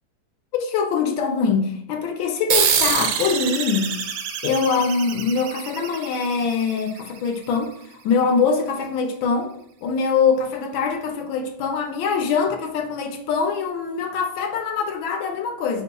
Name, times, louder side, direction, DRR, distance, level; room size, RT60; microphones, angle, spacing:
voice 1, 0.5-4.0 4.4-9.5 9.8-15.8, left 5 dB, 85° left, 1.5 m, -23 dB
sound 1, 2.5-7.5, right 8 dB, 75° right, 1.0 m, -26 dB
5.2 x 2.3 x 4.0 m
omnidirectional pair, 2.1 m